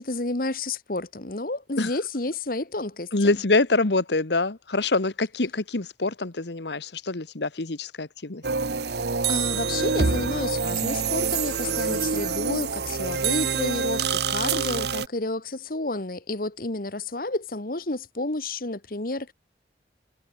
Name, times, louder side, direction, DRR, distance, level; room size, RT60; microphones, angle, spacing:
voice 1, 0.0-3.1 9.3-19.3, left 2 dB, 50° left, 1.5 m, -30 dB
voice 2, 3.1-8.4, left 3 dB, 75° left, 1.4 m, -25 dB
sound 1, 8.4-15.1, right 5 dB, 70° right, 1.1 m, -26 dB
head